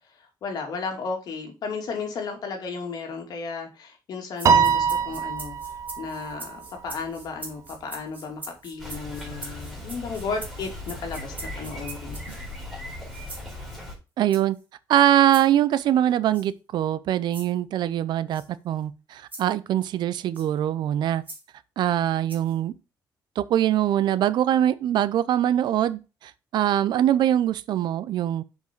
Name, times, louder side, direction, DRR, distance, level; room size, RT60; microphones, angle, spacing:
voice 1, 0.4-5.6 6.0-12.3, left 4 dB, 60° left, 2.7 m, -34 dB
sound 1, 4.4-12.5 13.1-13.5 14.3-14.6 15.3-15.5 16.3-16.5 17.3-17.5 18.3-18.5 19.3-19.5 20.3-20.5 21.3-21.4 22.3-22.6, right 2 dB, 20° right, 3.0 m, -42 dB
Piano, 4.5-6.9, right 6 dB, 45° right, 1.0 m, -23 dB
Bicycle, 8.8-13.9, left 1 dB, ahead, 4.0 m, -38 dB
voice 2, 14.2-14.6 14.9-21.2 21.8-22.7 23.4-28.4, right 11 dB, 70° right, 0.6 m, -23 dB
7.1 x 5.5 x 4.6 m
cardioid pair, 140°, 8 cm